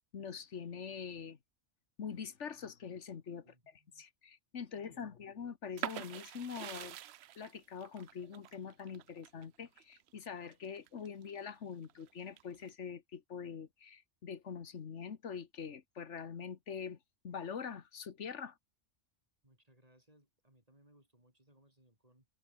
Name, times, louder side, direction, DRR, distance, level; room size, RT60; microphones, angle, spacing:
voice 1, 0.1-1.4 2.0-3.4 4.0-7.0 7.4-17.0 17.2-18.6, left 6 dB, 90° left, 1.6 m, -44 dB
voice 2, 3.4-4.0 4.6-5.2 19.4-22.3, right 1 dB, 30° right, 6.4 m, -67 dB
sound 1, 5.8-11.4 11.8-12.7, right 12 dB, 70° right, 0.8 m, -45 dB
omnidirectional pair, 1.2 m